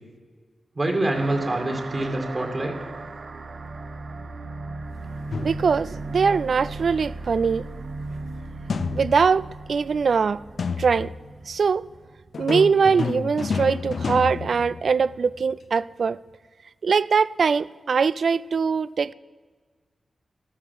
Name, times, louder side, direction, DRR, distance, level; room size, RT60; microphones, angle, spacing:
voice 1, 0.8-2.8, right 2 dB, 35° right, 2.4 m, -25 dB
sound 1, 1.1-12.1, right 2 dB, 50° right, 0.8 m, -36 dB
sound 2, 5.3-6.0 8.7-9.5 10.6-11.3 12.3-15.3, left 5 dB, 65° left, 0.6 m, -30 dB
voice 2, 5.4-7.7 8.9-10.4 10.8-11.1 11.5-11.8 12.4-16.2 16.8-19.1, right 5 dB, 65° right, 0.4 m, -22 dB
13.5 x 12.5 x 7.8 m
wide cardioid pair, 120°, 0 cm